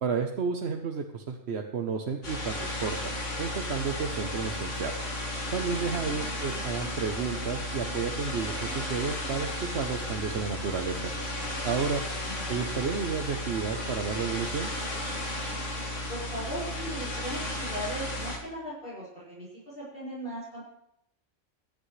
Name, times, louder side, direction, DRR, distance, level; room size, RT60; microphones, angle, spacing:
voice 1, 0.0-4.9 5.5-11.1 11.6-12.0 12.5-14.7, right 5 dB, 60° right, 3 dB, 1.2 m, -32 dB
sound 1, 2.2-18.4, left 1 dB, 75° left, 2.7 m, -34 dB
voice 2, 6.0-6.6 12.4-12.6 16.1-20.6, right 1 dB, 50° left, -10 dB, 5.5 m, -38 dB
24.0 x 8.8 x 3.3 m, 0.80 s
omnidirectional pair, 1.3 m